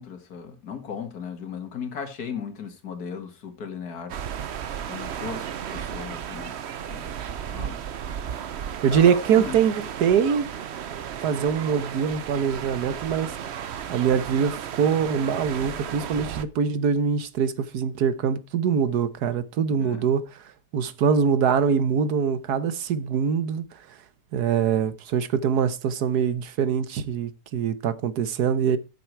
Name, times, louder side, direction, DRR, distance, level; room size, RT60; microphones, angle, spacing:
voice 1, 0.0-4.1 4.9-6.6 6.9-7.1 7.5-7.8 8.9-9.6 19.7-20.1, left 6 dB, 75° left, 2.3 m, -36 dB
sound 1, 4.1-16.4, right 8 dB, 55° right, 0.9 m, -34 dB
voice 2, 8.8-10.5 11.2-13.4 13.9-20.2 20.7-23.6 24.3-28.8, right 7 dB, 90° right, 1.5 m, -23 dB
13.0 x 6.9 x 4.5 m
omnidirectional pair, 1.6 m